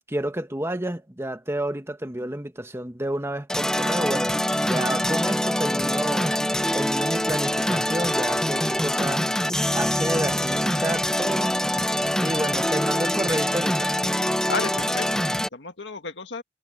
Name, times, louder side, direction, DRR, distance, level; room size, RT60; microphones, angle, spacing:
voice 1, 0.1-6.4 6.7-9.3 9.7-11.6 12.2-13.9, right 1 dB, 15° right, 1.5 m, -30 dB
sound 1, 3.5-15.5, equal, 5° left, 0.8 m, -24 dB
voice 2, 12.7-13.1 14.5-16.4, left 4 dB, 70° left, 1.8 m, -33 dB
head